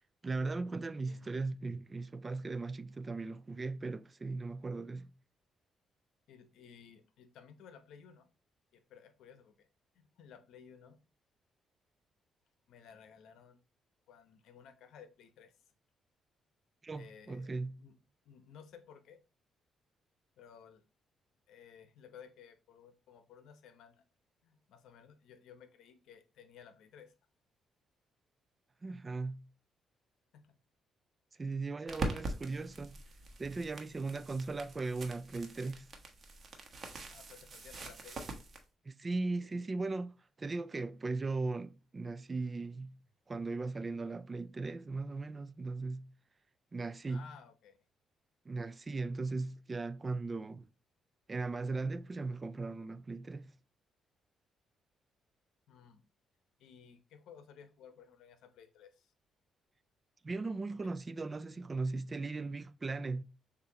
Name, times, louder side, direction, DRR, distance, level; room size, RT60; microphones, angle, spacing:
voice 1, 0.2-5.1 16.8-17.8 28.8-29.5 31.4-33.0 33.4-35.9 38.9-43.0 43.3-46.1 46.7-47.3 48.5-50.7 51.3-53.5 60.2-63.2, right 3 dB, 30° right, 0.4 m, -38 dB
voice 2, 6.3-8.3 8.7-9.7 9.9-11.0 12.7-13.5 14.1-15.5 16.9-17.5 17.8-17.9 18.2-19.2 20.4-20.8 21.5-24.0 24.4-27.1 30.3-30.6 37.1-38.5 47.1-47.8 55.7-56.0 56.6-59.1, left 7 dB, 80° left, 0.8 m, -56 dB
sound 1, 31.9-38.6, right 2 dB, 45° right, 1.1 m, -43 dB
6.7 x 2.7 x 2.8 m
cardioid pair, 90°, 0 cm